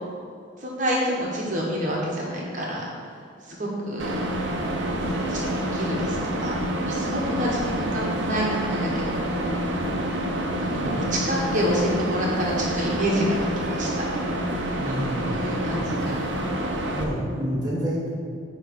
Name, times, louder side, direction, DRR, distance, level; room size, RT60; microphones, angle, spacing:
voice 1, 0.6-2.8 3.6-4.2 5.1-6.5 6.9-9.2 10.6-13.9 14.8-15.0 15.2-16.2, equal, 40° right, -3 dB, 1.3 m, -28 dB
sound 1, 4.0-17.1, right 1 dB, 75° right, 0.8 m, -27 dB
voice 2, 14.8-15.3 15.9-16.2 16.9-18.1, equal, 20° right, -7 dB, 1.1 m, -29 dB
9.2 x 3.2 x 5.3 m, 2.3 s
head